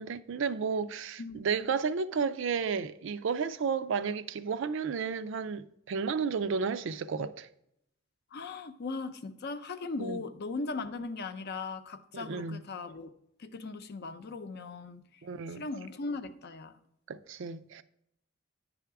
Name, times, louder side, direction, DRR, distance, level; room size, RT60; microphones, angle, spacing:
voice 1, 0.0-7.5 10.0-10.2 12.1-12.6 15.2-15.6 17.1-17.8, right 5 dB, 65° right, 0.4 m, -32 dB
voice 2, 1.2-1.7 8.3-13.1 13.4-15.2 15.5-16.8, left 3 dB, 55° left, 0.6 m, -38 dB
10.0 x 3.5 x 4.7 m
head